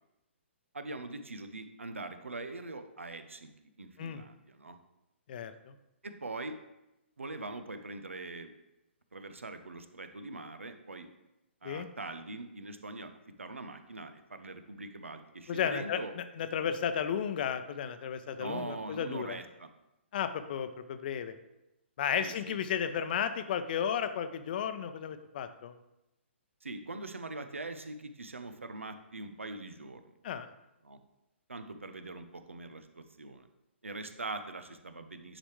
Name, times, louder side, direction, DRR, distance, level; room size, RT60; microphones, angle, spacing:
voice 1, 0.7-3.5 3.8-4.8 6.0-6.6 7.2-8.5 9.1-11.1 11.6-13.1 13.4-16.1 18.4-19.7 22.2-22.6 26.6-30.0 30.8-31.0 31.5-33.5 33.8-35.4, right 2 dB, 90° right, 9 dB, 0.8 m, -42 dB
voice 2, 5.3-5.7 11.6-11.9 15.5-19.4 20.1-21.3 22.0-25.8 30.2-30.5, left 8 dB, 50° left, 10 dB, 0.6 m, -34 dB
10.0 x 5.0 x 3.2 m, 0.92 s
hypercardioid pair, 130°, 7 cm